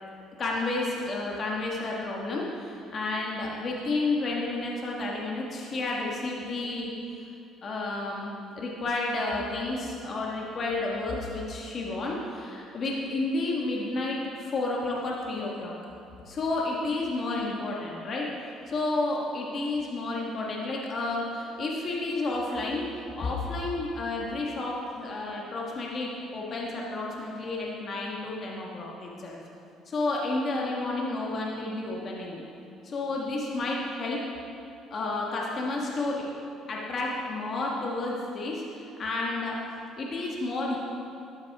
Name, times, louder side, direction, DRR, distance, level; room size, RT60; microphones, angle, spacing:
voice 1, 0.4-6.9 7.6-15.7 16.2-18.3 18.7-22.8 23.2-29.4 29.9-32.4 32.8-34.2 34.9-36.3 36.7-39.6 40.0-40.8, left 2 dB, 45° left, -3 dB, 1.5 m, -31 dB
12.5 x 8.6 x 3.5 m, 2.6 s
cardioid pair, 90°, 0 cm